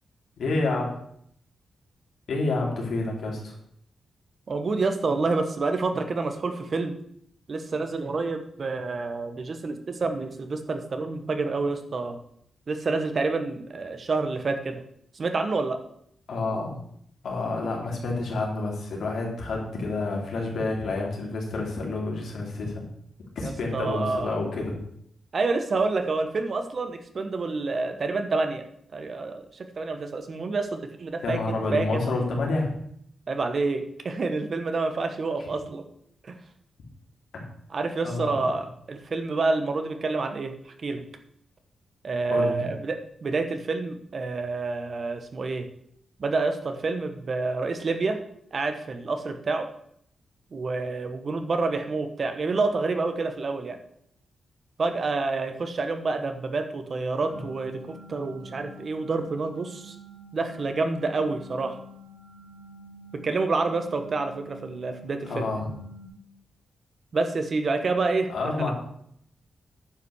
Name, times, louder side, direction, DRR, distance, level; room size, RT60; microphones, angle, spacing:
voice 1, 0.4-0.9 2.3-3.5 16.3-16.8 17.2-22.8 23.3-24.7 31.2-32.7 37.3-37.4 38.0-38.5 42.3-42.6 65.2-65.7 68.3-68.7, left 3 dB, 80° left, -1 dB, 3.3 m, -28 dB
voice 2, 4.5-7.0 7.5-12.2 12.7-14.8 15.1-15.8 23.4-24.4 25.3-28.6 28.9-32.0 33.3-35.8 36.2-36.3 37.7-41.0 42.0-45.7 46.2-48.2 48.5-49.7 50.5-53.8 54.8-59.9 60.3-61.8 63.2-65.5 67.1-68.3 68.6-68.7, right 3 dB, 50° right, 7 dB, 1.3 m, -28 dB
sound 1, 57.2-66.1, right 1 dB, 70° right, 5.0 m, -48 dB
10.0 x 5.8 x 6.5 m, 0.70 s
cardioid pair, 95°, 0 cm